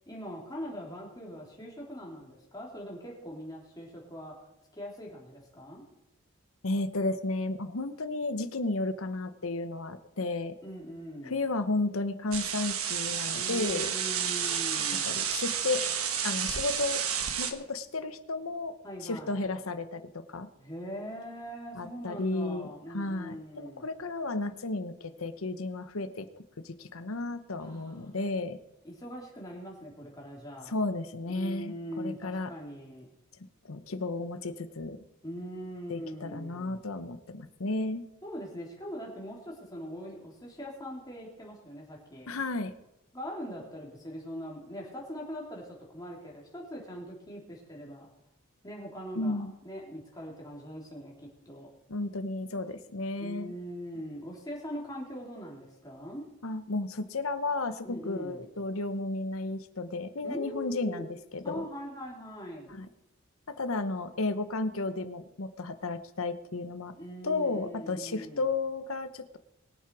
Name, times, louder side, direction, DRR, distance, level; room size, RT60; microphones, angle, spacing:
voice 1, 0.1-4.3 4.7-5.8 10.6-11.4 13.4-15.2 18.8-19.4 20.6-23.8 27.6-28.1 28.8-30.8 31.3-33.1 35.2-36.8 38.2-42.3 43.1-48.1 48.6-51.7 53.2-56.2 57.8-58.4 60.2-61.0 61.4-62.7 67.0-68.4, equal, 20° left, -3 dB, 3.5 m, -42 dB
voice 2, 6.6-10.5 11.2-13.9 15.0-15.8 16.2-17.0 17.4-18.8 19.0-20.5 21.7-28.6 30.7-32.5 33.6-35.0 35.9-38.1 42.3-42.7 49.1-49.5 51.9-53.5 56.4-61.6 62.7-62.9 63.5-66.9 67.2-69.4, left 2 dB, 75° left, 10 dB, 1.0 m, -33 dB
sound 1, 12.3-17.5, right 8 dB, 85° right, 1.3 m, -31 dB
22.0 x 7.6 x 4.8 m, 0.88 s
head